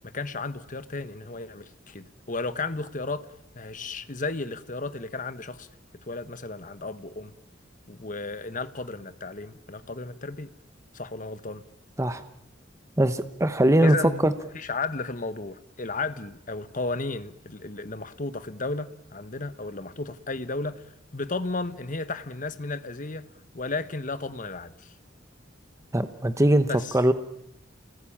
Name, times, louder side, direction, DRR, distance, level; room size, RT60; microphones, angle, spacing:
voice 1, 0.0-3.3 3.5-5.7 6.1-7.3 7.9-10.5 10.9-11.6 13.8-14.3 14.5-20.9 21.1-23.3 23.5-24.9 26.6-27.0, left 3 dB, 45° left, 1.3 m, -33 dB
voice 2, 13.0-14.0 14.2-14.3 25.9-26.7 26.9-27.1, right 1 dB, 15° right, 1.0 m, -21 dB
29.0 x 20.5 x 8.7 m
head